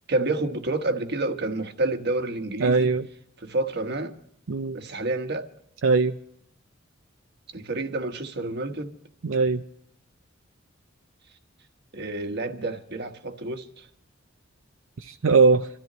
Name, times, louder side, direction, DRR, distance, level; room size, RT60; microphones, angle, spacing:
voice 1, 0.1-2.9 3.4-4.1 4.7-5.5 7.5-8.9 11.9-13.9, right 2 dB, 55° right, 1.3 m, -29 dB
voice 2, 2.6-3.1 4.5-4.8 5.8-6.1 9.2-9.6 15.0-15.7, right 4 dB, 85° right, 0.6 m, -20 dB
29.0 x 13.5 x 3.1 m
head